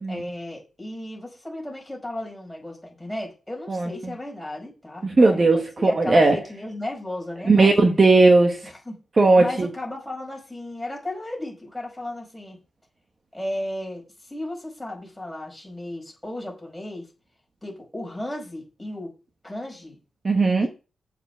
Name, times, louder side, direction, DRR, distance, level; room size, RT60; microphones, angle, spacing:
voice 1, 0.1-7.7 8.6-9.0 9.3-12.6 13.3-17.0 17.6-19.1 19.4-20.0 20.6-20.7, left 1 dB, 5° left, 4.9 m, -35 dB
voice 2, 3.7-4.1 5.0-6.4 7.5-8.7 9.2-9.7 20.2-20.7, right 3 dB, 30° right, 1.2 m, -17 dB
7.2 x 6.7 x 6.5 m
wide cardioid pair, 140°, 0 cm